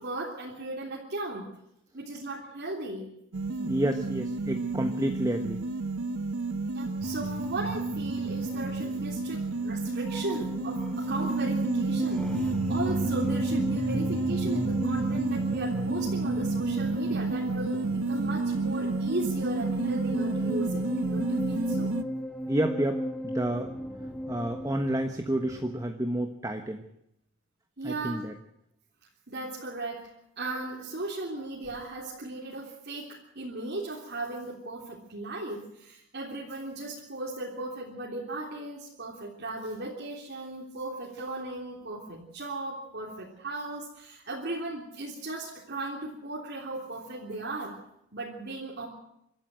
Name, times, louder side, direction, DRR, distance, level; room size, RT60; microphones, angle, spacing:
voice 1, 0.0-1.5 1.9-3.1 6.7-21.9 27.8-28.2 29.3-30.1 30.4-47.7 48.1-48.9, right 2 dB, 50° right, -3 dB, 3.5 m, -37 dB
sound 1, 3.3-22.0, right 3 dB, 85° right, 1.0 m, -30 dB
voice 2, 3.6-5.6 22.5-23.7 24.3-26.9 27.8-28.3, right 1 dB, 15° right, 5 dB, 1.2 m, -30 dB
sound 2, 7.0-25.8, equal, 5° left, 1.5 m, -36 dB
25.5 x 13.5 x 7.7 m, 0.80 s
head